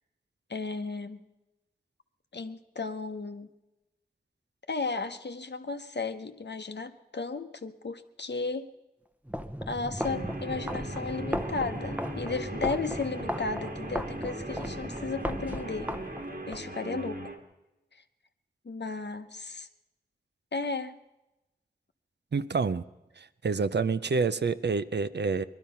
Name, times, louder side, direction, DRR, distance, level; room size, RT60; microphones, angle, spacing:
voice 1, 0.5-1.2 2.3-3.5 4.7-8.7 9.7-15.9 16.5-17.2 17.9-18.0 18.6-19.7 20.5-21.0, left 4 dB, 85° left, 8 dB, 0.9 m, -34 dB
sound 1, 9.2-16.6, equal, 10° right, 0.7 m, -36 dB
Guitar, 10.0-17.4, right 2 dB, 65° right, 1.7 m, -40 dB
voice 2, 22.3-22.8 23.2-25.4, right 4 dB, 85° right, 13 dB, 0.5 m, -28 dB
20.0 x 12.5 x 5.6 m, 0.99 s
wide cardioid pair, 45°, 17 cm